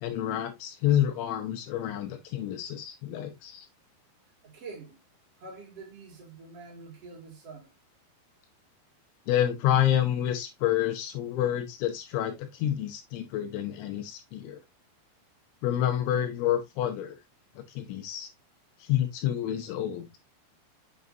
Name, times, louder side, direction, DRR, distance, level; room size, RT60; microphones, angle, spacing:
voice 1, 0.0-3.7 9.3-14.6 15.6-17.2 17.6-18.3 18.8-20.1, left 11 dB, 80° left, 2.9 m, -28 dB
voice 2, 4.4-5.0 5.4-7.7, right 3 dB, 40° right, 2.4 m, -45 dB
6.9 x 6.4 x 2.5 m
omnidirectional pair, 5.9 m